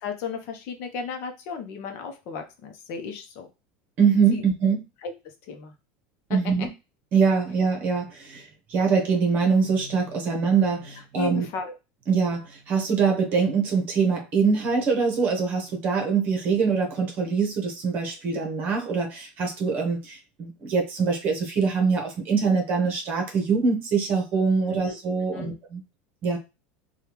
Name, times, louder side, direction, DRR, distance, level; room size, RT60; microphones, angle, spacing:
voice 1, 0.0-3.5 4.3-4.4 5.0-5.1 5.5-5.7 11.1-11.7 24.6-25.0 25.3-25.5, left 5 dB, 50° left, 4 dB, 0.7 m, -34 dB
voice 2, 4.0-4.8 6.3-6.7 7.1-11.4 12.1-25.8 26.2-26.4, right 5 dB, 40° right, 2 dB, 1.0 m, -23 dB
3.3 x 2.3 x 3.0 m, 0.27 s
supercardioid pair, 155°, 5 cm